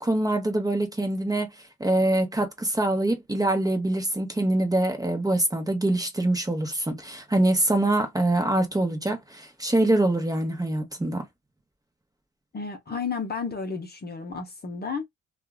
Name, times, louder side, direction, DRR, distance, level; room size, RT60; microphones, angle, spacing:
voice 1, 0.0-1.5 1.8-11.2, right 1 dB, 10° right, 0.9 m, -24 dB
voice 2, 12.5-15.1, left 5 dB, 30° left, 0.8 m, -32 dB
2.8 x 2.5 x 2.2 m
cardioid pair, 90°, 30 cm